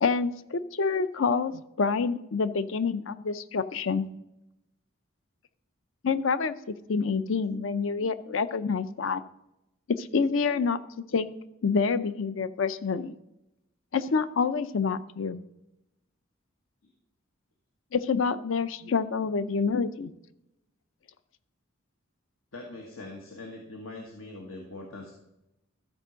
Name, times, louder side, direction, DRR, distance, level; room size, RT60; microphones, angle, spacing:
voice 1, 0.0-4.1 6.0-6.6 6.9-9.2 10.0-10.8 11.1-11.3 11.6-13.1 13.9-15.4 17.9-20.1, left 5 dB, 65° left, 14 dB, 0.5 m, -27 dB
voice 2, 22.5-25.1, left 2 dB, 85° left, 0 dB, 1.5 m, -42 dB
13.5 x 4.5 x 6.3 m, 0.88 s
head